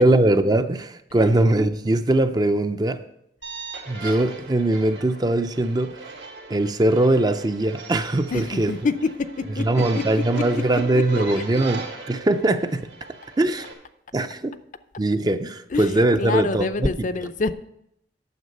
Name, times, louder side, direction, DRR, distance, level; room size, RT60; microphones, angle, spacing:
voice 1, 0.0-3.0 3.9-6.0 6.5-8.7 9.6-12.9 13.4-13.6 14.1-14.5 15.0-16.9, right 1 dB, 25° right, 9 dB, 0.5 m, -21 dB
sound 1, 3.4-13.7, right 3 dB, 80° right, 2.2 m, -38 dB
voice 2, 8.3-8.9 9.6-9.7 9.9-11.4 15.7-17.5, left 3 dB, 45° left, 11 dB, 0.5 m, -27 dB
9.5 x 7.2 x 5.4 m, 0.76 s
head